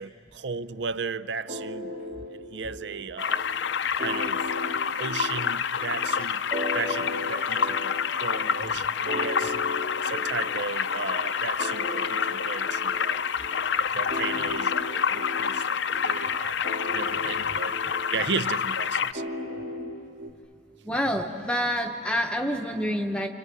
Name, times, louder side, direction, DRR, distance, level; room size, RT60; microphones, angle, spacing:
voice 1, 0.0-3.5 4.0-4.4 5.0-6.4 6.7-9.5 10.0-13.2 13.9-16.6 16.9-17.8 18.1-19.2, right 5 dB, 75° right, 0.6 m, -35 dB
sound 1, 1.5-20.3, left 1 dB, 45° right, 1.8 m, -37 dB
sound 2, 3.2-19.1, left 7 dB, 75° left, 0.6 m, -28 dB
voice 2, 20.8-23.3, equal, 5° left, 0.9 m, -28 dB
29.0 x 27.0 x 7.5 m
head